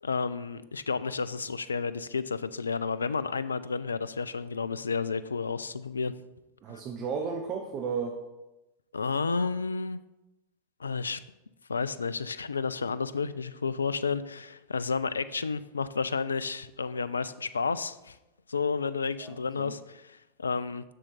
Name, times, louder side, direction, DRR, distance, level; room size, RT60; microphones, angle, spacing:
voice 1, 0.0-6.1 8.9-10.0 10.8-11.2 11.7-18.2 18.5-20.8, left 5 dB, 75° left, 15 dB, 0.3 m, -31 dB
voice 2, 6.6-8.2 19.2-19.8, right 5 dB, 35° right, 2 dB, 0.8 m, -34 dB
7.4 x 6.3 x 4.2 m, 0.98 s
figure-of-eight pair, 90°, 0 cm